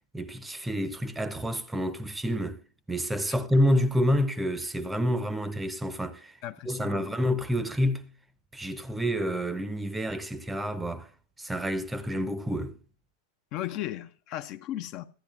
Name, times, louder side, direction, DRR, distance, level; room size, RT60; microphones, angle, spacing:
voice 1, 0.1-2.6 2.9-6.3 6.7-8.0 8.5-11.1 11.4-12.8, equal, 10° right, 0.6 m, -28 dB
voice 2, 6.4-7.2 13.5-15.1, left 13 dB, 40° left, 0.4 m, -36 dB
13.0 x 9.9 x 2.3 m
figure-of-eight pair, 90°, 0 cm